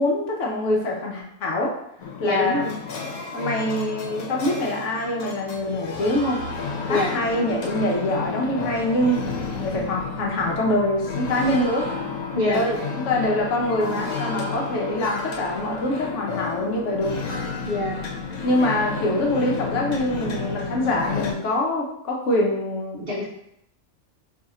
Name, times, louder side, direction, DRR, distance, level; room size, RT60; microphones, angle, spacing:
voice 1, 0.0-1.7 2.2-2.7 3.3-6.4 6.8-9.2 9.6-11.9 12.5-17.1 18.4-23.1, left 1 dB, 65° left, -1 dB, 0.9 m, -24 dB
sound 1, 2.0-21.3, left 4 dB, 85° left, 1.1 m, -31 dB
voice 2, 2.2-2.8 6.9-7.1 12.3-12.6 17.7-18.1 23.0-23.2, left 2 dB, 60° right, -4 dB, 0.6 m, -25 dB
2.7 x 2.4 x 4.1 m, 0.78 s
omnidirectional pair, 1.5 m